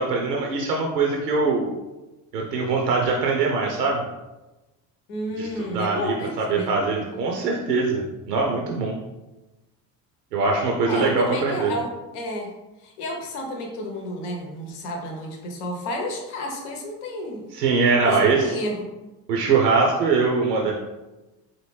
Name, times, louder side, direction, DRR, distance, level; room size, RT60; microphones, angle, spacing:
voice 1, 0.0-1.6 2.3-4.0 5.4-8.0 8.3-8.9 10.3-11.7 17.5-18.4 19.3-20.7, right 4 dB, 90° right, 0 dB, 0.6 m, -22 dB
voice 2, 5.1-6.7 10.9-12.5 12.8-17.6 18.0-18.9, left 1 dB, 70° left, 2 dB, 0.9 m, -31 dB
4.2 x 2.6 x 3.1 m, 1.1 s
hypercardioid pair, 60°, 47 cm